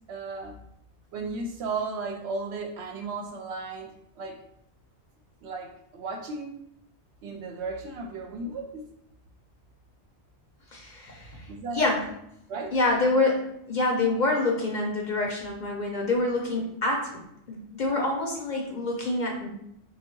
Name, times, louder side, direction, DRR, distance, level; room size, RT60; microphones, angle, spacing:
voice 1, 0.1-0.6 1.1-4.4 5.4-6.6 7.2-8.9 11.5-11.8 12.5-12.8, right 3 dB, 70° right, 4 dB, 0.8 m, -35 dB
voice 2, 10.7-11.5 11.7-12.0 12.7-17.1 17.5-19.5, left 2 dB, 50° left, 0 dB, 0.7 m, -26 dB
3.4 x 2.3 x 4.4 m, 0.75 s
omnidirectional pair, 1.2 m